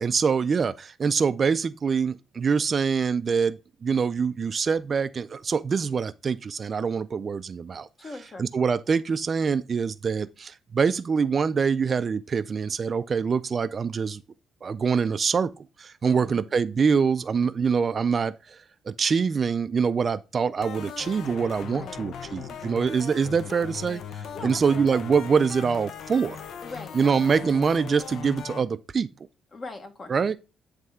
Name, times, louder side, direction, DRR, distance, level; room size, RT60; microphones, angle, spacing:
voice 1, 0.0-7.9 8.4-14.2 14.6-15.5 15.8-18.6 18.9-24.0 24.4-26.4 26.9-29.1 30.1-30.3, right 5 dB, 40° right, 0.3 m, -24 dB
voice 2, 8.0-8.5 16.0-16.5 21.7-22.0 24.3-24.9 26.6-27.5 29.5-30.2, left 3 dB, 35° left, 1.2 m, -41 dB
sound 1, 20.6-28.6, left 7 dB, 70° left, 0.6 m, -39 dB
9.2 x 3.2 x 3.5 m
cardioid pair, 90°, 0 cm